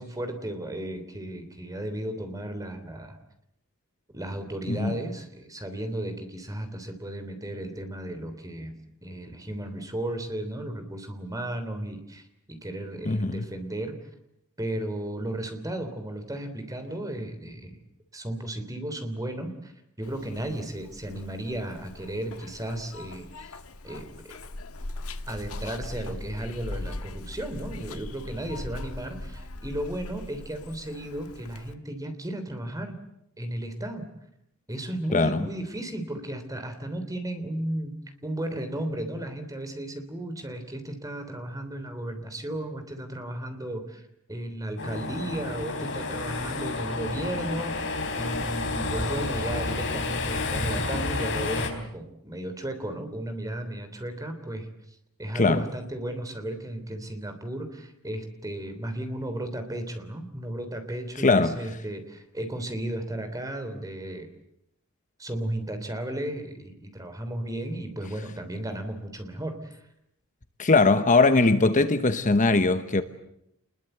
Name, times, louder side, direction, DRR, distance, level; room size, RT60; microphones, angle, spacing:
voice 1, 0.0-3.2 4.1-8.7 9.0-14.0 14.6-17.8 18.1-19.7 20.0-23.5 23.8-24.4 25.3-33.0 33.4-34.1 34.7-38.0 38.2-44.0 44.3-54.7 55.2-64.3 65.2-69.8, right 1 dB, 15° right, 3.3 m, -34 dB
voice 2, 13.1-13.4 35.1-35.4 55.3-55.6 61.2-61.5 70.6-73.0, left 3 dB, 35° left, 1.0 m, -21 dB
Zipper (clothing), 20.0-31.7, left 2 dB, 75° left, 1.5 m, -40 dB
sound 1, 44.8-51.7, left 3 dB, 55° left, 4.5 m, -30 dB
28.0 x 21.5 x 8.0 m
head